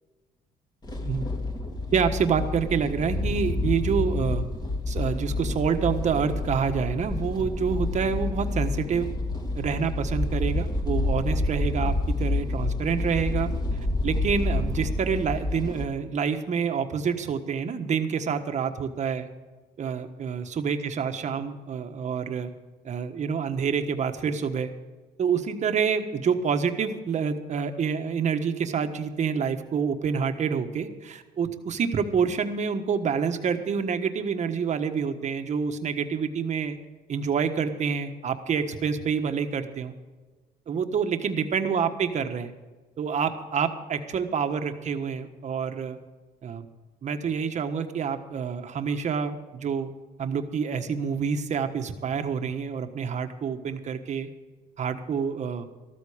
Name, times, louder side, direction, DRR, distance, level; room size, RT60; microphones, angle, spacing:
sound 1, 0.8-15.9, left 2 dB, 25° left, 2.5 m, -28 dB
voice 1, 1.9-4.4 4.9-9.1 9.5-13.5 14.0-19.3 19.8-22.5 22.8-24.7 25.2-36.8 37.1-39.9 40.7-42.5 43.0-46.0 46.4-46.7 47.0-49.9 50.2-54.3 54.8-55.7, right 6 dB, 45° right, 7 dB, 1.4 m, -27 dB
14.0 x 13.5 x 5.0 m, 1.3 s
cardioid pair, 110°, 17 cm